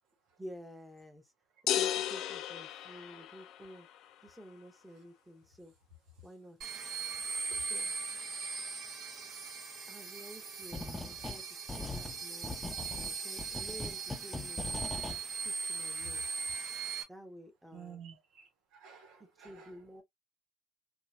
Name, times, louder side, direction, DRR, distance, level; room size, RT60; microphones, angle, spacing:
voice 1, 0.4-1.3 1.6-3.9 4.2-5.7 6.2-6.6 7.6-7.9 9.9-12.6 12.9-14.9 15.4-16.2 17.1-18.0 19.4-20.0, equal, 5° right, 1.2 m, -51 dB
sound 1, 1.7-3.7, left 11 dB, 65° left, 0.4 m, -34 dB
sound 2, 6.6-17.0, right 5 dB, 50° right, 1.2 m, -39 dB
voice 2, 7.0-7.4 16.1-16.3 17.7-19.8, right 6 dB, 70° right, 1.0 m, -53 dB
sound 3, 10.7-11.4 11.7-15.2, left 2 dB, 15° left, 0.6 m, -41 dB
2.9 x 2.3 x 2.6 m
hypercardioid pair, 70°, 0 cm